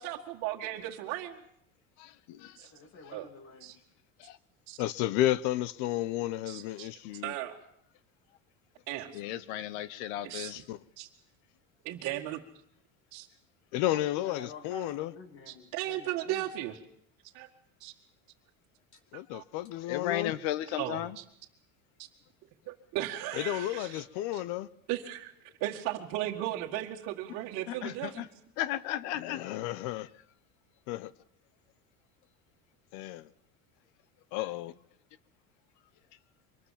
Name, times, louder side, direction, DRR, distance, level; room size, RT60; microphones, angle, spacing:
voice 1, 0.0-1.4 2.6-2.7 3.1-3.3 3.6-3.8 4.7-4.8 6.5-6.9 7.2-7.6 8.9-9.2 10.2-10.6 11.0-11.1 11.8-12.4 13.1-13.3 15.5-16.8 17.3-17.5 17.8-17.9 19.1-19.4 20.7-21.2 22.0-22.1 22.7-24.0 24.3-24.4 24.9-25.3 25.6-28.2, right 14 dB, 55° right, 2.0 m, -36 dB
voice 2, 2.7-3.7 14.2-16.4, left 3 dB, 35° left, 3.0 m, -49 dB
voice 3, 4.8-7.3 10.5-10.8 13.7-15.1 19.1-20.4 23.3-24.7 29.1-30.1 30.9-31.1 32.9-33.3 34.3-34.7, left 14 dB, 60° left, 0.8 m, -32 dB
voice 4, 9.1-10.5 19.9-21.1 27.8-28.3 28.6-29.6, left 13 dB, 75° left, 1.3 m, -34 dB
24.5 x 20.0 x 7.4 m
cardioid pair, 170°, 35 cm